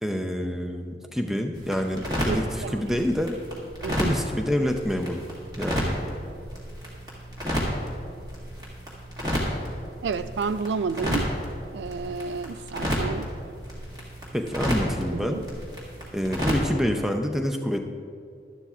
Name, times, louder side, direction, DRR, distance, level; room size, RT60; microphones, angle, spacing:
voice 1, 0.0-3.4 3.9-5.3 5.6-6.0 14.3-15.4 16.1-17.8, equal, ahead, 4 dB, 0.5 m, -27 dB
sound 1, 1.5-16.7, equal, 25° right, 1.8 m, -31 dB
voice 2, 2.3-2.8 3.8-4.2 10.0-11.3 11.7-13.3 15.1-15.4, right 5 dB, 75° right, 13 dB, 0.3 m, -31 dB
12.5 x 11.5 x 2.4 m, 2.3 s
head